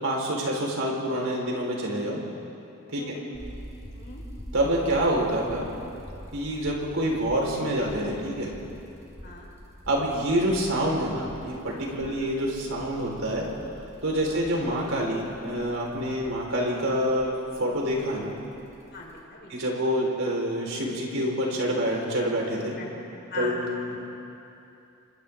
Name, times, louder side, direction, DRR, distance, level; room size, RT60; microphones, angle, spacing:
voice 1, 0.0-2.2 2.9-3.0 4.5-5.7 6.3-8.5 9.9-13.5 14.0-17.3 17.6-18.3 19.5-22.8 23.4-23.7, right 1 dB, 70° right, -2 dB, 4.6 m, -27 dB
voice 2, 2.9-3.3 3.9-4.2 9.2-9.5 12.0-12.3 14.2-14.5 18.9-19.7 22.8-22.9 23.3-24.0, left 2 dB, 50° left, -2 dB, 4.4 m, -39 dB
sound 1, 3.3-19.2, equal, 15° right, 3.4 m, -46 dB
29.0 x 25.5 x 3.8 m, 2.8 s
head